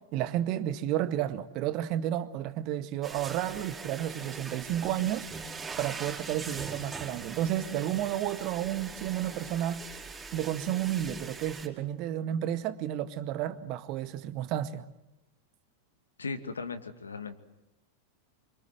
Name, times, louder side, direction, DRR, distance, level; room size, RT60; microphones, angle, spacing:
voice 1, 0.0-5.3 5.8-9.8 10.3-14.9, right 12 dB, 40° right, 1.8 m, -31 dB
sound 1, 3.0-11.7, right 4 dB, 15° right, 5.0 m, -42 dB
voice 2, 16.2-17.4, left 4 dB, 75° left, 2.3 m, -37 dB
28.5 x 25.0 x 7.8 m
figure-of-eight pair, 90°, 0 cm